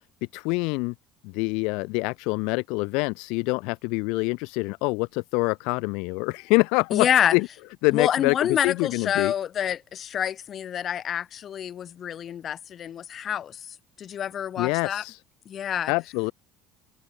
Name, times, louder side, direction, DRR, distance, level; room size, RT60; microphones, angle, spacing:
voice 1, 0.3-0.9 1.2-7.5 7.8-8.3 8.6-9.3 14.6-15.2 15.9-16.3, left 29 dB, 80° left, 0.9 m, -25 dB
voice 2, 6.9-7.3 7.9-15.0 15.5-15.9, left 9 dB, 40° left, 2.1 m, -27 dB
cardioid pair, 115°, 0 cm